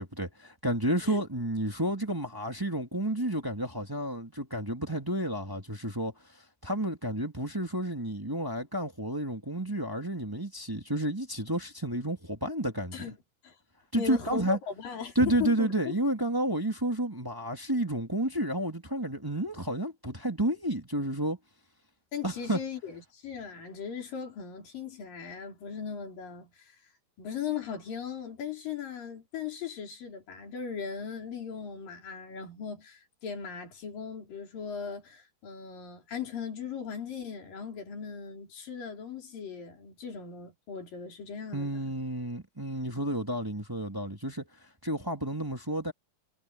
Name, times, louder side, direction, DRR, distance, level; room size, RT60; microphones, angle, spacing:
voice 1, 0.0-6.1 6.6-13.1 13.9-14.6 15.1-21.4 22.2-22.6 41.5-44.4 44.8-45.9, right 1 dB, 10° right, 1.2 m, -31 dB
voice 2, 14.0-15.7 22.1-26.7 27.2-41.9, left 7 dB, 85° left, 6.1 m, -38 dB
omnidirectional pair, 3.8 m